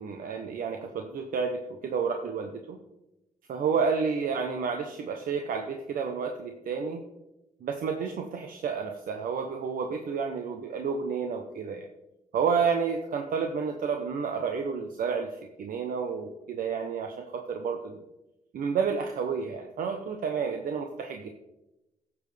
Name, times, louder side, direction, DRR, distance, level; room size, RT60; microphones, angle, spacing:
voice 1, 0.0-2.8 3.5-7.0 7.6-11.9 12.3-18.0 18.5-21.3, right 5 dB, 80° right, 4 dB, 0.9 m, -30 dB
14.5 x 7.2 x 3.4 m, 0.94 s
cardioid pair, 105°, 14 cm